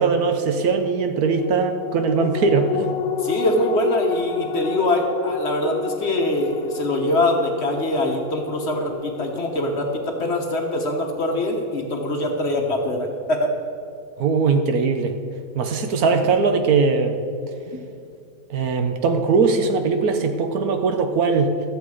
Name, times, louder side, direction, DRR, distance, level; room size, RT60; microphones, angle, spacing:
voice 1, 0.0-2.9 14.2-15.1 15.6-17.2 18.5-21.5, right 4 dB, 65° right, 6 dB, 1.2 m, -20 dB
sound 1, 1.4-12.2 12.6-12.7, left 7 dB, 70° left, 0.6 m, -31 dB
voice 2, 3.2-13.5 16.0-16.3, left 1 dB, 45° left, 2 dB, 1.2 m, -23 dB
13.5 x 7.8 x 4.8 m, 2.5 s
omnidirectional pair, 1.8 m